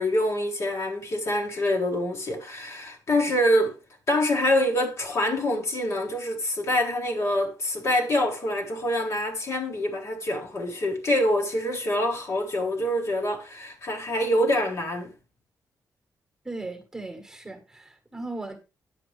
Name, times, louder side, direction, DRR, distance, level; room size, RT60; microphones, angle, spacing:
voice 1, 0.0-3.7 4.1-15.1, left 1 dB, 45° left, 1.5 m, -25 dB
voice 2, 16.4-18.6, right 2 dB, 5° right, 1.4 m, -37 dB
9.5 x 6.9 x 3.3 m
wide cardioid pair, 150°, 7 cm